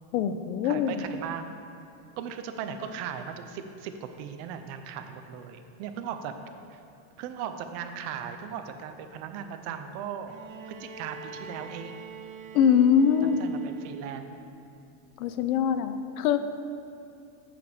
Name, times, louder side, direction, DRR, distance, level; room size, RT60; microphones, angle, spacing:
voice 1, 0.1-1.0 12.5-13.4 15.2-16.4, left 8 dB, 90° left, 11 dB, 0.6 m, -23 dB
voice 2, 0.6-1.5 2.2-6.4 6.7-6.8 7.2-10.4 10.6-12.0 13.2-14.4, right 8 dB, 40° right, 8 dB, 0.5 m, -38 dB
Bowed string instrument, 10.3-14.3 15.6-15.7, right 5 dB, 75° right, 0.7 m, -45 dB
8.2 x 4.3 x 6.7 m, 2.6 s
supercardioid pair, 160°, 41 cm